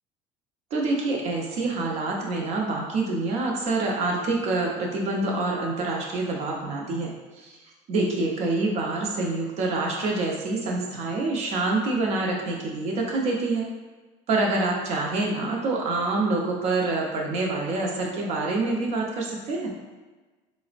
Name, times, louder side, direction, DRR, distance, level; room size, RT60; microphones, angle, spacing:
voice 1, 0.7-7.6 7.9-13.7 14.3-19.7, right 2 dB, 50° right, -1 dB, 0.6 m, -26 dB
4.0 x 2.0 x 2.5 m, 1.3 s
cardioid pair, 150°, 14 cm